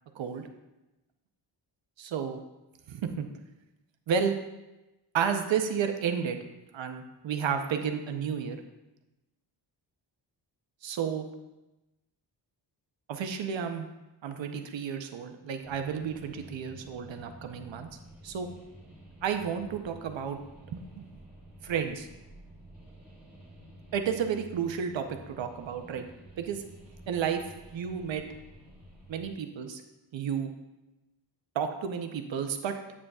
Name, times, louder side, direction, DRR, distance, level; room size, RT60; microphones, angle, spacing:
voice 1, 2.0-2.4 2.9-3.3 4.1-4.3 5.1-6.4 6.7-8.6 10.8-11.3 13.1-13.9 14.2-17.9 18.2-18.5 19.2-20.4 20.7-21.1 21.6-22.1 23.9-26.0 26.4-26.6 27.1-27.4 27.7-28.2 29.1-29.8 30.1-30.5 31.6-32.7, right 7 dB, 85° right, 6 dB, 0.8 m, -31 dB
sound 1, 15.6-29.3, right 1 dB, 5° right, 1.9 m, -51 dB
8.4 x 7.7 x 2.4 m, 1.0 s
wide cardioid pair, 170°, 44 cm